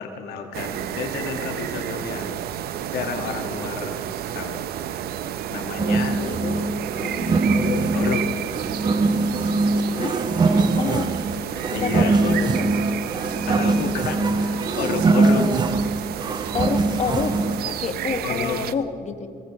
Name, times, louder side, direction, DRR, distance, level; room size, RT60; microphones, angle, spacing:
voice 1, 0.0-2.4 2.9-4.0 4.3-4.7 5.5-6.2 7.5-8.3 11.7-12.9 13.5-15.5 18.2-18.6, left 6 dB, 75° left, 3 dB, 1.7 m, -30 dB
sound 1, 0.5-18.7, right 10 dB, 65° right, 0.7 m, -31 dB
voice 2, 5.8-6.7 7.0-7.4 9.9-10.2 10.5-11.1 11.7-12.8 15.4-15.5 16.5-17.4 17.7-19.3, left 6 dB, 45° left, 7 dB, 1.4 m, -29 dB
sound 2, 5.8-17.7, right 3 dB, 25° right, 0.6 m, -22 dB
21.0 x 19.0 x 3.1 m, 2.4 s
cardioid pair, 110°, 17 cm